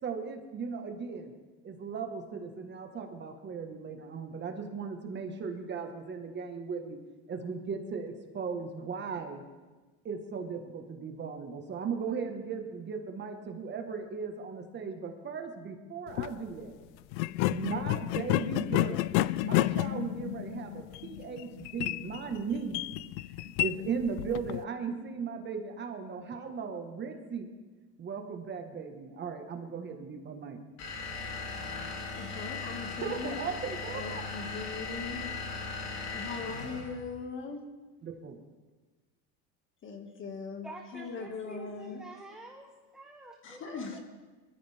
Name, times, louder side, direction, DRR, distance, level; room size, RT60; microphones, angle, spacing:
voice 1, 0.0-1.3 1.6-7.0 7.3-9.4 10.0-16.8 17.5-19.1 19.4-22.8 23.4-27.5 28.0-30.6 33.0-34.3 38.0-38.4, right 5 dB, 30° right, 4 dB, 1.6 m, -37 dB
sound 1, 16.1-16.3 17.1-24.6, left 17 dB, 85° left, 0.5 m, -31 dB
sound 2, 30.8-37.0, left 4 dB, 50° left, 4.1 m, -38 dB
voice 2, 32.1-33.4 33.9-35.2 36.1-37.6 39.8-40.7 40.9-42.0 43.4-44.0, left 4 dB, 35° left, 4 dB, 2.2 m, -40 dB
voice 3, 40.6-44.0, right 1 dB, ahead, 2 dB, 1.0 m, -47 dB
23.0 x 13.5 x 3.6 m, 1.3 s
cardioid pair, 135°, 34 cm